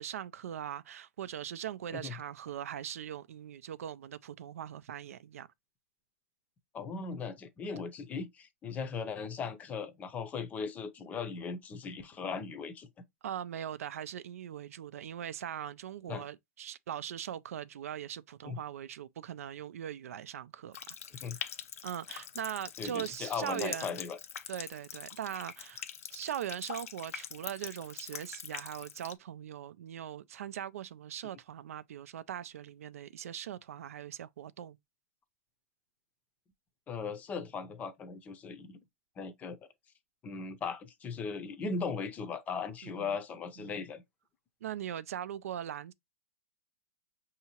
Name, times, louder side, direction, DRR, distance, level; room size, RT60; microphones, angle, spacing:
voice 1, 0.0-5.5 13.2-20.8 21.2-21.5 21.8-23.9 24.5-25.8 26.1-34.8 42.8-43.2 43.6-43.9 44.6-45.9, right 10 dB, 85° right, 0.4 m, -40 dB
voice 2, 6.7-12.9 16.1-16.3 18.4-18.6 21.2-21.4 22.8-24.2 36.9-38.8 39.2-39.6 40.2-44.0, left 5 dB, 20° left, 0.6 m, -38 dB
Water tap faucet, 20.7-29.1, left 9 dB, 85° left, 0.5 m, -44 dB
5.7 x 2.8 x 2.8 m
hypercardioid pair, 145°, 8 cm